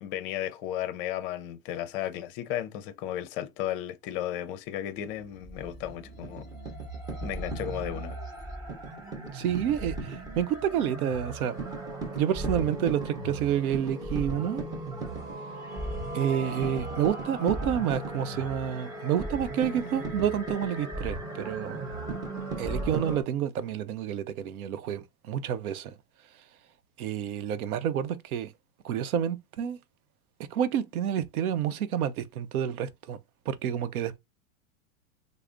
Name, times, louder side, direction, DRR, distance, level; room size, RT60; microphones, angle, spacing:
voice 1, 0.0-6.5 7.2-8.2, left 11 dB, 40° left, 0.5 m, -34 dB
sound 1, 5.0-23.2, right 2 dB, 10° right, 0.6 m, -36 dB
voice 2, 9.3-11.6 12.1-14.6 16.1-21.8 22.6-26.6 27.0-28.5 28.8-29.8 30.5-33.2 33.4-34.2, right 9 dB, 75° right, 0.7 m, -29 dB
3.3 x 2.0 x 3.7 m
supercardioid pair, 140°, 43 cm